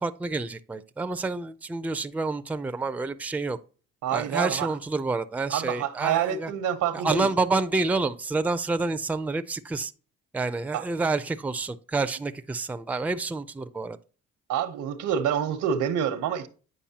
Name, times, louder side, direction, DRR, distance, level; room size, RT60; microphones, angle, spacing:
voice 1, 0.0-3.6 4.1-6.5 6.9-9.9 10.3-14.0, right 3 dB, 5° right, 0.4 m, -28 dB
voice 2, 4.0-4.7 5.5-7.3 10.7-10.9 14.5-16.5, right 9 dB, 85° right, 1.0 m, -27 dB
8.6 x 5.3 x 2.8 m
cardioid pair, 90°, 30 cm